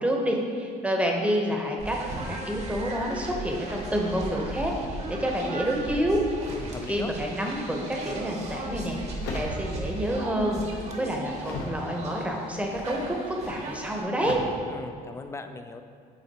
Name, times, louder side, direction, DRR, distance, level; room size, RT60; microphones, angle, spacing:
voice 1, 0.0-6.2 6.9-9.0 9.3-14.4, equal, 10° right, 0 dB, 0.8 m, -28 dB
sound 1, 1.8-14.0, right 2 dB, 40° right, 0.9 m, -37 dB
voice 2, 6.5-7.1 14.7-15.8, left 3 dB, 15° left, 8 dB, 0.3 m, -39 dB
sound 2, 9.2-10.1 10.5-11.9 12.5-12.9 14.2-14.4, left 3 dB, 80° left, 0.8 m, -37 dB
8.1 x 4.1 x 2.9 m, 2.3 s
cardioid pair, 110°, 17 cm